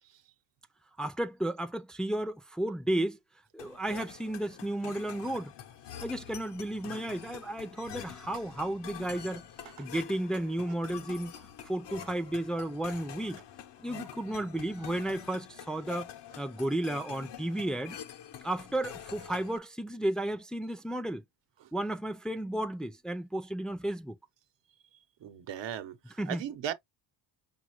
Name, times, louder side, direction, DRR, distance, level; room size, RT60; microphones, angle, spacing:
voice 1, 1.0-3.2 3.5-5.5 6.0-9.5 9.8-11.3 11.6-13.4 13.8-16.1 16.4-18.0 18.4-21.2 21.7-24.1 26.2-26.4, right 1 dB, ahead, 0.5 m, -33 dB
sound 1, 3.6-19.6, left 10 dB, 65° left, 0.8 m, -46 dB
voice 2, 25.2-26.0 26.3-26.7, right 10 dB, 70° right, 0.9 m, -36 dB
5.6 x 2.4 x 3.0 m
cardioid pair, 90°, 46 cm